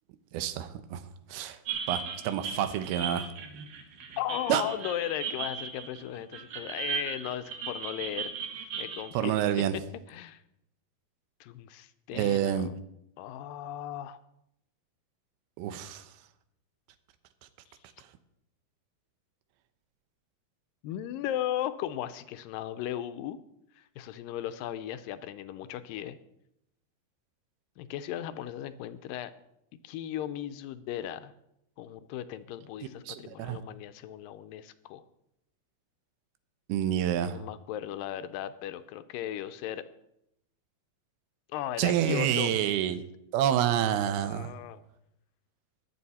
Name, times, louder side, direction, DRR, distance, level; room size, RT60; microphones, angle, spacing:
voice 1, 0.3-1.0 1.3-1.6 1.9-3.3 4.5-4.6 9.1-9.7 12.1-12.7 15.6-16.0 33.1-33.6 36.7-37.4 41.8-43.0 43.3-44.5, right 10 dB, 90° right, 10 dB, 2.7 m, -28 dB
sound 1, 1.7-9.1, right 7 dB, 70° right, 3.2 m, -37 dB
voice 2, 4.2-9.6 10.1-10.4 11.4-12.7 13.2-14.2 20.8-23.4 23.8-26.2 27.8-29.3 29.8-31.3 31.8-35.0 37.2-39.8 41.5-42.5 44.2-44.8, left 12 dB, 80° left, 12 dB, 2.1 m, -36 dB
22.0 x 7.8 x 4.2 m, 0.81 s
omnidirectional pair, 4.3 m